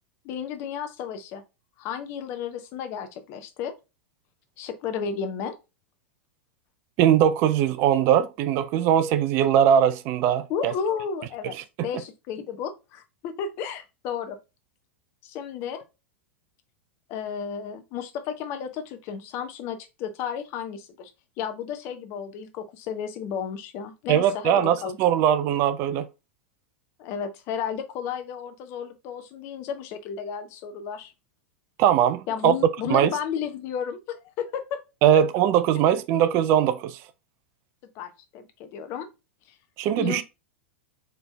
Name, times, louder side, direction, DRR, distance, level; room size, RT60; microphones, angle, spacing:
voice 1, 0.2-1.4 1.8-3.7 4.6-5.5 10.5-11.6 11.8-14.4 15.2-15.8 17.1-21.1 21.4-25.0 27.0-31.1 32.3-34.8 35.1-35.2 37.9-39.1 40.0-40.2, left 7 dB, 40° left, 0.9 m, -33 dB
voice 2, 7.0-10.7 24.1-26.1 31.8-32.5 32.9-33.1 35.0-37.0 39.8-40.2, right 10 dB, 40° right, 0.4 m, -21 dB
4.5 x 3.3 x 3.3 m
figure-of-eight pair, 90°, 6 cm